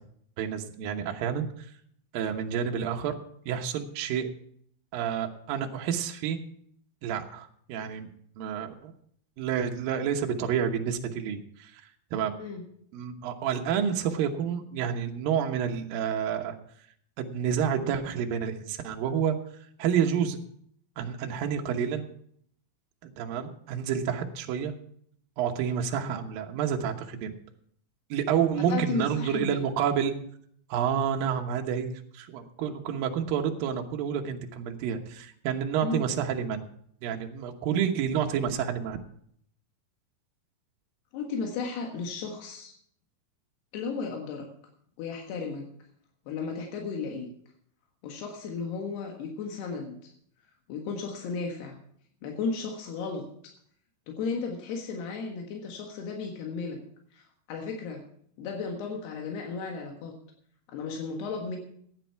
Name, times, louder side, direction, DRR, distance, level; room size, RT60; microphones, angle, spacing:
voice 1, 0.4-1.7 2.1-3.2 3.5-4.3 4.9-6.4 7.0-8.1 8.4-8.9 9.4-11.8 12.1-12.4 12.9-16.6 17.2-19.4 19.8-20.4 21.0-22.1 23.0-24.7 25.4-27.3 28.1-30.1 30.7-36.7 37.0-39.0, right 8 dB, 70° right, 3 dB, 2.7 m, -29 dB
voice 2, 28.7-29.6 35.8-36.1 41.1-42.7 43.7-44.5 45.0-45.7 46.3-47.3 48.0-50.1 50.7-51.8 52.2-53.5 54.2-56.8 57.1-58.0 58.4-60.1 60.7-61.6, left 4 dB, 90° left, 1 dB, 3.7 m, -34 dB
15.5 x 10.5 x 4.6 m, 0.64 s
omnidirectional pair, 4.6 m